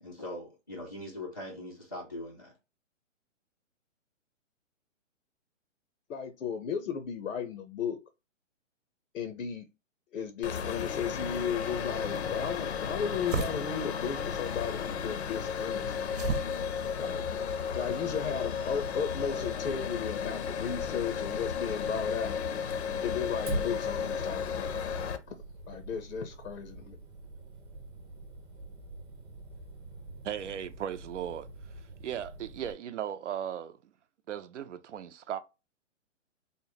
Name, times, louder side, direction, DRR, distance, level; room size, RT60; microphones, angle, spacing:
voice 1, 0.0-2.5, left 1 dB, 20° left, 0.3 m, -41 dB
voice 2, 6.1-8.0 9.1-9.6 10.1-16.0 17.0-17.2 17.7-22.4 23.0-24.8 25.3-25.4 25.7-27.0, left 7 dB, 90° left, 0.8 m, -35 dB
sound 1, 10.4-25.2, left 6 dB, 60° left, 0.6 m, -34 dB
sound 2, 13.1-18.3, right 4 dB, 90° right, 0.9 m, -39 dB
Fire, 23.5-32.7, right 1 dB, 20° right, 0.9 m, -44 dB
voice 3, 30.3-31.7 32.0-33.9 34.3-35.4, right 9 dB, 65° right, 0.6 m, -37 dB
3.7 x 2.1 x 4.0 m
hypercardioid pair, 160°, 38 cm